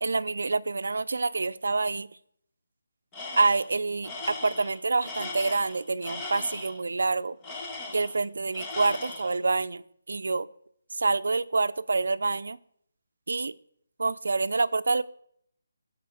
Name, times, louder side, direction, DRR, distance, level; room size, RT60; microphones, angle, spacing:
voice 1, 0.0-2.1 3.4-7.4 7.9-9.8 10.1-10.5 10.9-12.6 13.3-13.5 14.0-15.0, right 3 dB, 70° right, 13 dB, 0.6 m, -27 dB
Tools, 3.1-3.7 4.0-6.8 7.4-8.3 8.5-9.4, left 3 dB, 10° left, 1.3 m, -38 dB
12.5 x 5.2 x 6.4 m, 0.68 s
hypercardioid pair, 170°, 0 cm